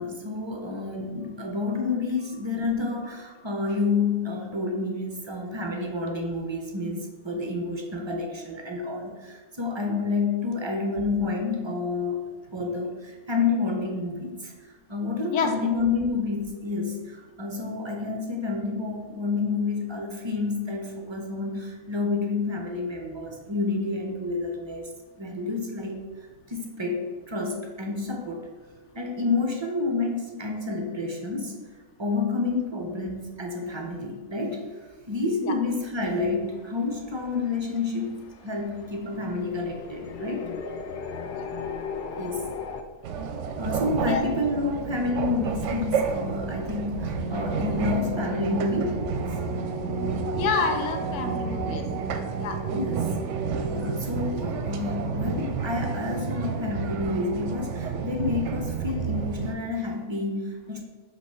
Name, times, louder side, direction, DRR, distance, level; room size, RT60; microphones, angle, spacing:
voice 1, 0.0-12.2 12.5-14.5 14.9-24.9 25.2-26.0 26.5-28.4 28.9-31.6 32.0-34.6 35.1-38.2 38.4-40.5 42.2-42.5 43.6-49.1 52.7-53.2 53.7-60.8, left 3 dB, 40° right, 2 dB, 0.4 m, -29 dB
voice 2, 15.3-15.7 35.4-35.5 41.3-41.5 44.0-44.2 50.4-51.8 52.4-52.6, left 5 dB, 65° left, 6 dB, 0.9 m, -28 dB
sound 1, 35.7-42.8, left 5 dB, 80° left, 0.4 m, -38 dB
sound 2, 43.0-59.5, right 5 dB, 65° right, 0.8 m, -30 dB
5.6 x 3.0 x 5.6 m, 1.3 s
omnidirectional pair, 1.5 m